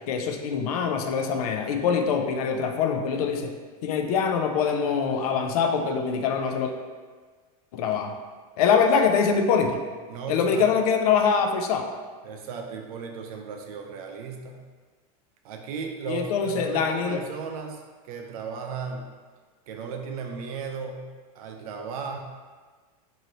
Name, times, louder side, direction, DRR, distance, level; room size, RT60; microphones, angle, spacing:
voice 1, 0.1-3.5 3.8-6.7 7.7-8.1 8.6-9.8 10.3-11.9 16.1-17.2, left 6 dB, 75° left, 5 dB, 0.4 m, -24 dB
voice 2, 10.1-10.6 12.2-14.6 15.4-19.1 19.7-21.1 21.3-22.2, right 5 dB, 70° right, 3 dB, 0.5 m, -35 dB
3.0 x 2.7 x 2.6 m, 1.5 s
supercardioid pair, 160°, 19 cm